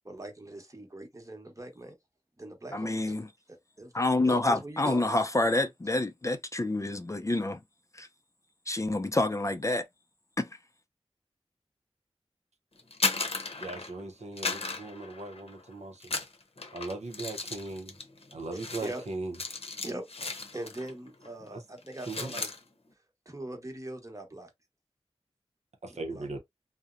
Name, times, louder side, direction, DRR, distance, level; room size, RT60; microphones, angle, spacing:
voice 1, 0.0-1.9 2.4-3.3 3.8-3.9 4.2-5.1 18.8-19.0 19.8-20.0 20.5-22.5 23.3-24.5 25.9-26.3, right 1 dB, 30° right, 0.9 m, -41 dB
voice 2, 2.7-3.3 3.9-7.6 7.9-8.1 8.7-9.8 10.4-10.5, left 2 dB, 30° left, 0.4 m, -28 dB
sound 1, 12.8-14.0 14.4-15.6 16.0-20.9 21.2-21.5 21.8-22.6, left 3 dB, 60° left, 0.7 m, -35 dB
voice 3, 13.6-16.1 16.7-18.0 18.3-19.4 21.5-21.6 22.1-22.3 25.8-26.4, right 2 dB, 85° right, 0.6 m, -38 dB
2.7 x 2.0 x 2.4 m
wide cardioid pair, 40°, 11 cm